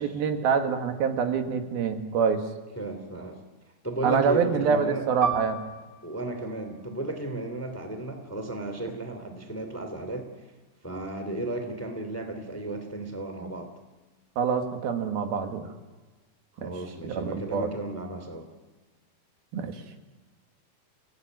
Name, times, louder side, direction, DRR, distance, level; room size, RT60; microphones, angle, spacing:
voice 1, 0.0-2.4 4.0-5.6 14.4-15.7 16.6-16.7 17.0-17.7 19.5-19.8, right 6 dB, 80° right, 6 dB, 3.5 m, -26 dB
voice 2, 2.8-3.4 3.8-5.0 6.0-10.3 10.8-13.7 16.6-18.5, right 1 dB, 5° left, 6 dB, 2.0 m, -34 dB
Piano, 5.2-10.3 10.6-10.8 11.5-11.9, right 6 dB, 45° right, 1.1 m, -37 dB
28.0 x 18.0 x 9.3 m, 1.2 s
omnidirectional pair, 4.3 m